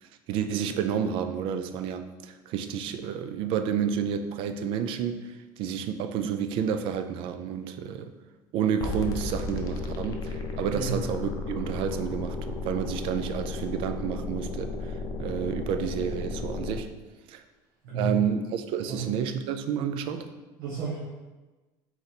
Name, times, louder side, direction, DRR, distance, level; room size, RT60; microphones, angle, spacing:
voice 1, 0.0-8.1 8.5-16.9 17.3-17.4 17.9-20.3, right 8 dB, 60° right, 9 dB, 0.4 m, -30 dB
sound 1, 8.8-16.8, left 3 dB, 35° left, 0.5 m, -34 dB
voice 2, 17.8-18.1 18.9-19.1 20.6-21.0, right 4 dB, 85° right, -6 dB, 1.1 m, -31 dB
3.9 x 3.0 x 4.1 m, 1.2 s
supercardioid pair, 125°, 10 cm